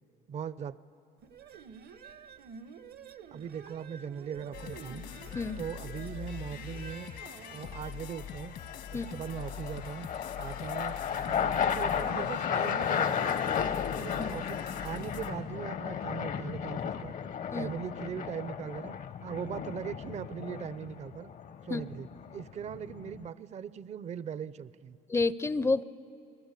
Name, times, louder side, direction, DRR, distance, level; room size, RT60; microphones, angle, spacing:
voice 1, 0.3-0.8 3.3-5.1 5.6-7.1 7.5-8.6 8.9-10.1 10.4-11.0 11.3-13.3 13.9-17.2 17.5-21.3 21.6-25.0, right 8 dB, 40° right, 17 dB, 0.6 m, -40 dB
sound 1, 1.2-8.0, right 7 dB, 65° right, 0.9 m, -50 dB
sound 2, 4.4-4.9 8.7-23.3, left 8 dB, 50° left, 0.8 m, -34 dB
sound 3, 4.5-15.3, left 8 dB, 75° left, 1.8 m, -43 dB
voice 2, 25.1-25.8, left 3 dB, 15° left, 17 dB, 0.5 m, -29 dB
28.0 x 20.0 x 8.3 m, 2.7 s
cardioid pair, 110°, 17 cm